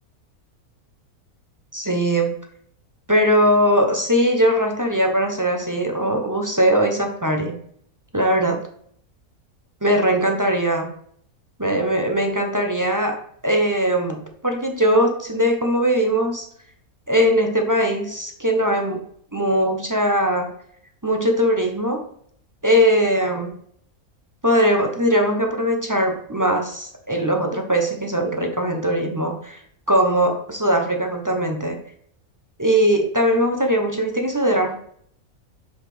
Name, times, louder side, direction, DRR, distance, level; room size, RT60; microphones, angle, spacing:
voice 1, 1.7-2.3 3.1-7.6 8.1-8.6 9.8-10.9 11.6-16.5 17.1-19.0 19.3-20.5 21.0-22.0 22.6-23.5 24.4-29.6 29.9-31.8 32.6-34.8, equal, 15° right, 3 dB, 0.7 m, -20 dB
5.6 x 5.1 x 5.9 m, 0.64 s
omnidirectional pair, 1.6 m